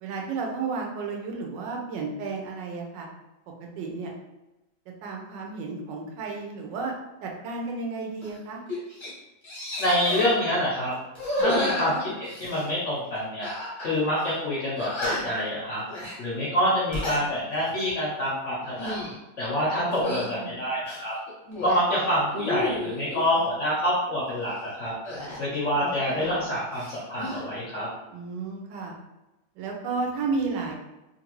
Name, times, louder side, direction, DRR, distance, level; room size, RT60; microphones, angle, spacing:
voice 1, 0.0-3.1 3.8-4.1 5.0-6.9 7.2-8.6 11.4-11.5 19.8-20.6 28.1-29.0 29.6-30.7, right 4 dB, 70° right, 0 dB, 1.2 m, -32 dB
sound 1, 8.2-8.4 8.7-9.1 9.4-10.3 11.1-12.7 13.4-13.9 14.2-14.3 14.8-15.4 15.9-16.2 16.7-17.2 17.7-17.9 18.6-19.2 19.9-20.3 20.8-21.8 22.3-23.2 25.0-26.5 26.7-27.4, left 1 dB, 25° left, 0.6 m, -32 dB
voice 2, 9.8-10.9 11.4-13.5 13.8-15.8 16.2-18.9 19.4-21.2 21.6-24.9 25.4-27.9, equal, 65° left, -7 dB, 0.7 m, -26 dB
3.1 x 2.5 x 3.0 m, 0.99 s
omnidirectional pair, 2.1 m